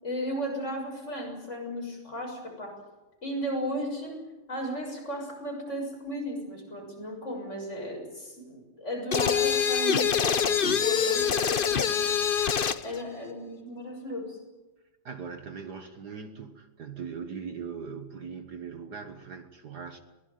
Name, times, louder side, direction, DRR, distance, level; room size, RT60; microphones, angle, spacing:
voice 1, 0.0-2.8 3.2-4.2 4.5-12.2 12.8-14.4, equal, 35° left, 1 dB, 7.0 m, -35 dB
sound 1, 9.1-12.9, left 7 dB, 55° left, 0.5 m, -25 dB
voice 2, 15.0-20.0, right 6 dB, 55° right, 7 dB, 1.8 m, -40 dB
22.5 x 18.5 x 9.3 m, 1.1 s
omnidirectional pair, 2.2 m